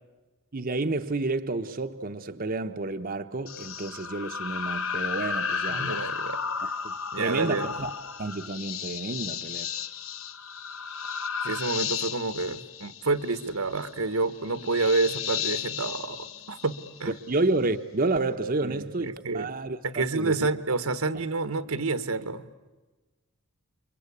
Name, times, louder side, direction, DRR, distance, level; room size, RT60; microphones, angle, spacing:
voice 1, 0.5-6.0 6.8-7.9 8.2-9.7 17.1-20.5, right 2 dB, 40° right, 0.8 m, -30 dB
sound 1, 3.5-17.3, left 7 dB, 65° left, 0.9 m, -34 dB
voice 2, 5.7-6.4 7.1-7.7 11.4-16.7 17.0-17.1 18.6-19.5 19.8-22.5, right 3 dB, 85° right, 1.4 m, -29 dB
30.0 x 24.0 x 8.4 m
head